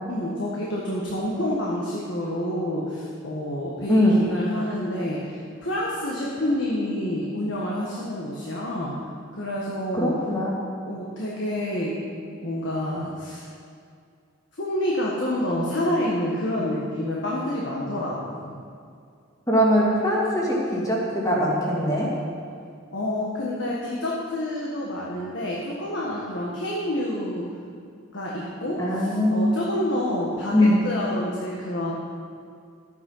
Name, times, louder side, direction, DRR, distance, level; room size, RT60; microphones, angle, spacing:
voice 1, 0.1-8.9 9.4-10.1 10.9-12.0 12.3-13.5 14.6-18.6 22.9-27.5 28.1-31.9, left 1 dB, 60° left, -4 dB, 1.7 m, -28 dB
voice 2, 3.9-4.2 9.9-10.6 19.5-22.1 28.8-29.5 30.5-30.8, equal, 15° left, -4 dB, 2.3 m, -21 dB
13.0 x 9.4 x 5.7 m, 2.3 s
head